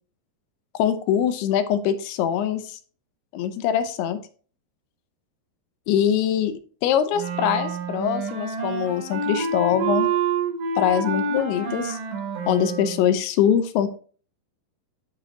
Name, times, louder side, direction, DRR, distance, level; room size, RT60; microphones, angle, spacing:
voice 1, 0.7-2.8 3.3-4.2 5.9-6.5 6.8-10.1 10.8-12.0 12.5-13.9, left 9 dB, 80° left, 10 dB, 2.5 m, -23 dB
Wind instrument woodwind instrument, 7.1-13.0, right 5 dB, 85° right, 3.8 m, -27 dB
9.6 x 3.3 x 3.7 m, 0.42 s
omnidirectional pair, 4.8 m